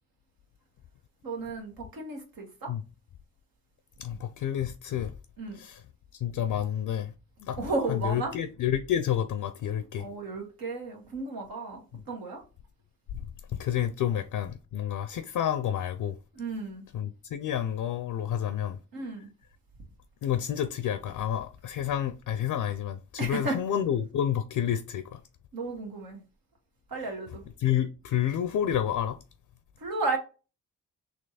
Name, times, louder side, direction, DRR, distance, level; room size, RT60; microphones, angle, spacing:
voice 1, 1.2-2.7 4.1-4.2 5.4-5.6 7.6-8.4 10.0-12.4 16.3-16.8 18.9-19.3 23.2-23.6 25.5-26.2 26.9-27.4 29.8-30.2, right 3 dB, 75° right, 1.3 m, -33 dB
voice 2, 4.0-5.1 5.5-5.8 6.1-7.1 7.4-7.6 7.9-10.1 13.5-16.2 16.9-18.8 20.2-25.2 27.6-29.2, left 10 dB, 60° left, 0.5 m, -29 dB
3.3 x 3.0 x 3.9 m
supercardioid pair, 40°, 36 cm